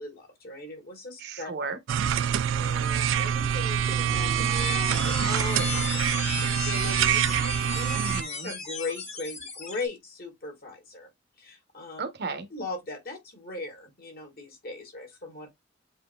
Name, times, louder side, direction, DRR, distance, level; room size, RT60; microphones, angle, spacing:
voice 1, 0.0-1.5 2.5-8.0 8.4-11.1 11.4-12.0 12.5-15.5, left 3 dB, 55° left, 1.9 m, -39 dB
voice 2, 1.2-1.8 7.9-8.5 12.0-12.5, right 4 dB, 60° right, 0.9 m, -34 dB
sound 1, 1.9-8.2, right 9 dB, 80° right, 0.3 m, -25 dB
sound 2, 3.9-9.9, left 4 dB, 35° left, 1.3 m, -35 dB
7.8 x 2.7 x 2.2 m
head